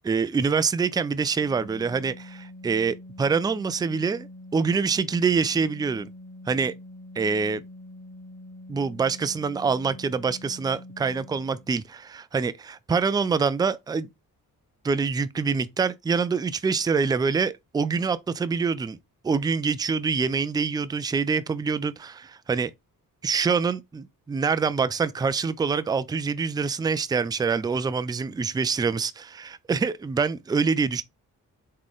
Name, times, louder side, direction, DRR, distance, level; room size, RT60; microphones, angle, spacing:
voice 1, 0.0-4.3 4.5-6.1 6.5-6.7 7.2-7.6 8.7-14.1 14.8-19.0 19.2-22.7 23.2-31.0, right 5 dB, 10° right, 0.3 m, -25 dB
Organ, 1.2-11.8, left 1 dB, 25° left, 1.4 m, -45 dB
3.7 x 3.2 x 3.6 m
cardioid pair, 60°, 37 cm